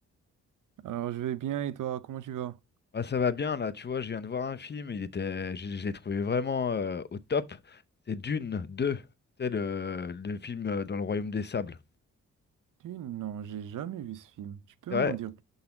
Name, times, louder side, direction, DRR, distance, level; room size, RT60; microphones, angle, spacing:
voice 1, 0.8-2.6 12.8-15.4, right 11 dB, 80° right, 0.7 m, -35 dB
voice 2, 2.9-7.8 8.1-9.0 9.4-11.8 14.9-15.2, left 5 dB, 35° left, 0.7 m, -31 dB
12.0 x 4.1 x 3.8 m
cardioid pair, 80°, 31 cm